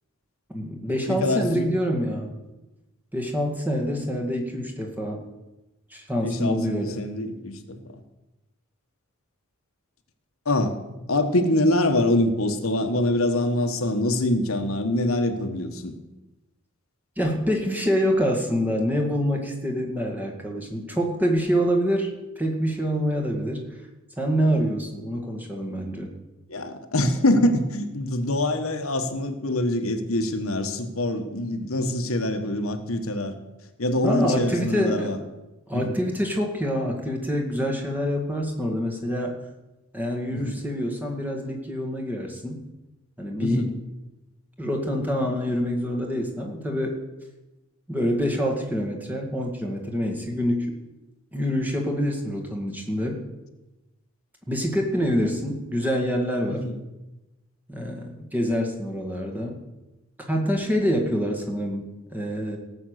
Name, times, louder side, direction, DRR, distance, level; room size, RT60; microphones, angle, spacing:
voice 1, 0.5-2.4 3.1-5.2 5.9-7.0 17.2-23.7 24.2-26.1 34.0-35.3 35.7-39.3 39.9-42.6 43.2-43.7 44.6-47.0 47.9-50.7 51.3-53.2 54.5-56.7 57.7-59.5 60.3-62.6, equal, 10° right, 1 dB, 2.1 m, -26 dB
voice 2, 1.1-1.6 6.2-7.9 10.4-10.8 11.1-15.9 24.6-24.8 26.5-33.3 33.8-35.2 35.7-36.0 40.3-40.5 43.4-43.7 56.5-56.8, left 1 dB, 75° left, 6 dB, 1.4 m, -24 dB
17.5 x 7.8 x 6.6 m, 1.0 s
head